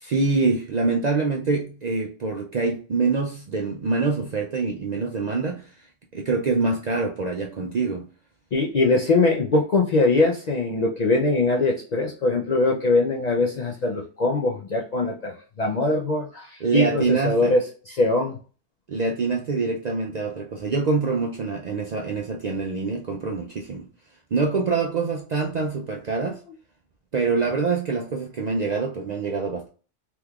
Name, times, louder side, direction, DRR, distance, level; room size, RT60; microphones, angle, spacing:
voice 1, 0.0-5.9 6.1-8.1 16.6-17.5 18.9-23.9 24.3-26.4 27.1-29.7, right 4 dB, 55° right, 0 dB, 0.4 m, -25 dB
voice 2, 8.5-18.4, left 2 dB, 55° left, -1 dB, 0.5 m, -22 dB
3.5 x 3.0 x 2.3 m, 0.38 s
omnidirectional pair, 1.2 m